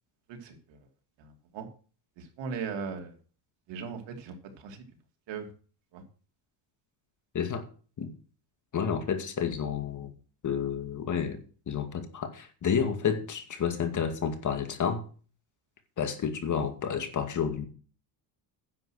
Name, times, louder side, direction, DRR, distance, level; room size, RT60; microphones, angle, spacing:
voice 1, 0.3-0.8 1.2-1.7 2.2-3.2 3.7-4.8 5.3-5.5 5.9-6.0, right 5 dB, 70° right, 5 dB, 2.9 m, -39 dB
voice 2, 8.7-10.1 10.4-15.0 16.0-17.7, left 7 dB, 40° left, 8 dB, 2.2 m, -30 dB
10.5 x 7.8 x 6.4 m, 0.39 s
cardioid pair, 120°, 44 cm